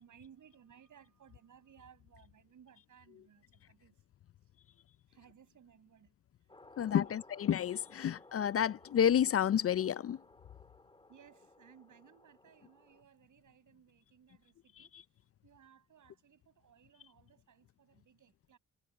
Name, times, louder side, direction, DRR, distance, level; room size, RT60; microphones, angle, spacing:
voice 1, 0.0-4.0 5.1-6.5 6.8-7.4 11.1-14.9 15.4-18.6, right 8 dB, 60° right, 7.2 m, -62 dB
sound 1, 6.5-13.0, left 2 dB, 15° left, 2.4 m, -59 dB
voice 2, 6.8-10.2, left 9 dB, 40° left, 0.5 m, -30 dB
cardioid pair, 75°, 35 cm